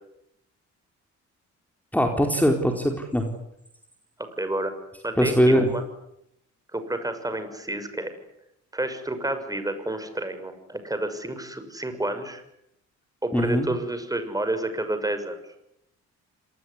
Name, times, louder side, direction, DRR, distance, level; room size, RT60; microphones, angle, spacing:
voice 1, 1.9-3.3 5.2-5.7 13.3-13.7, equal, 5° left, 3 dB, 4.4 m, -21 dB
voice 2, 4.4-4.7 5.0-5.8 6.7-8.1 8.7-12.4 13.2-15.4, right 1 dB, 10° right, 9 dB, 6.4 m, -29 dB
27.5 x 20.0 x 9.9 m, 0.80 s
cardioid pair, 90°, 30 cm